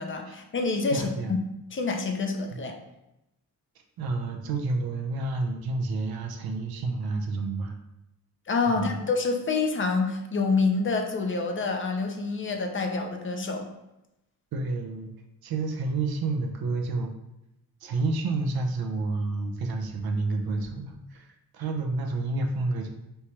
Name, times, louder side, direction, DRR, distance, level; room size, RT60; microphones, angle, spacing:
voice 1, 0.0-1.4 1.7-2.7 8.5-13.7, left 4 dB, 35° left, 4 dB, 0.5 m, -27 dB
voice 2, 0.9-1.4 2.5-2.6 4.0-7.8 8.7-9.0 14.5-15.1 15.4-17.1 17.8-22.9, right 3 dB, 85° right, 3 dB, 0.7 m, -29 dB
3.3 x 2.9 x 4.5 m, 0.90 s
wide cardioid pair, 145°, 36 cm